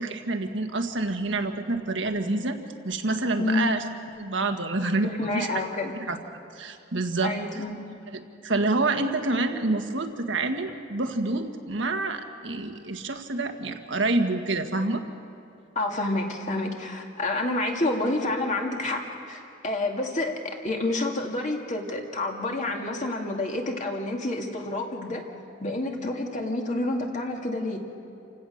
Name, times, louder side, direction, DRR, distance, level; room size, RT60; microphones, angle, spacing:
voice 1, 0.0-2.6 2.8-3.8 4.2-5.5 5.9-6.2 6.5-7.3 8.4-15.0, right 2 dB, 70° right, 5 dB, 1.5 m, -27 dB
voice 2, 3.4-3.7 5.0-6.1 7.2-7.8 15.8-19.0 19.3-25.2 25.6-27.8, left 2 dB, 40° left, 1 dB, 2.2 m, -29 dB
28.5 x 16.5 x 6.5 m, 2.5 s
head